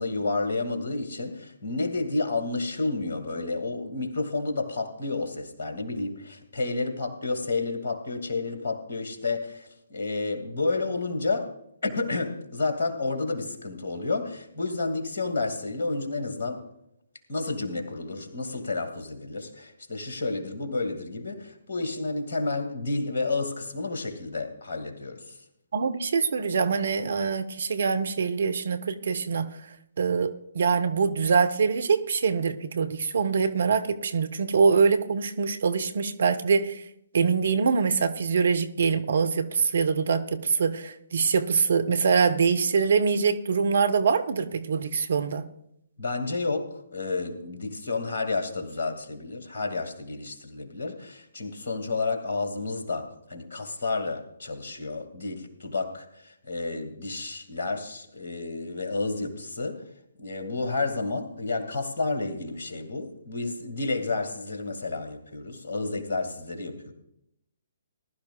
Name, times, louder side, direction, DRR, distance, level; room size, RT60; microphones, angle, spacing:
voice 1, 0.0-11.5 11.8-16.6 17.3-25.4 46.0-59.8 60.2-66.9, left 3 dB, 50° left, 5 dB, 2.0 m, -30 dB
voice 2, 25.7-29.5 30.0-36.8 37.1-45.4, right 5 dB, 55° right, 9 dB, 0.8 m, -24 dB
19.5 x 12.0 x 2.3 m, 0.79 s
figure-of-eight pair, 130°, 0 cm